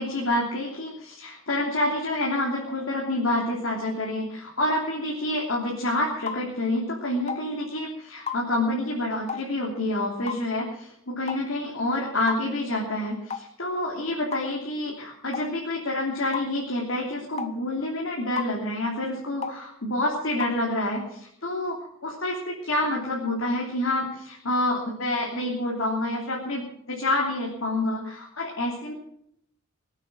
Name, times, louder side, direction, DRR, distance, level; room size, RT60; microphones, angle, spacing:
voice 1, 0.0-28.9, left 1 dB, 80° left, -2 dB, 3.2 m, -28 dB
sound 1, 6.3-6.4 7.3-7.5 8.3-8.4 9.3-9.5 10.3-10.5 11.3-11.5 12.3-12.4 13.3-13.5 14.3-14.5 15.3-15.5 16.3-16.5 17.4-17.6 18.4-18.6 19.4-19.6 20.4-20.6, left 6 dB, 30° left, 0.8 m, -32 dB
23.5 x 8.9 x 6.3 m, 0.73 s
head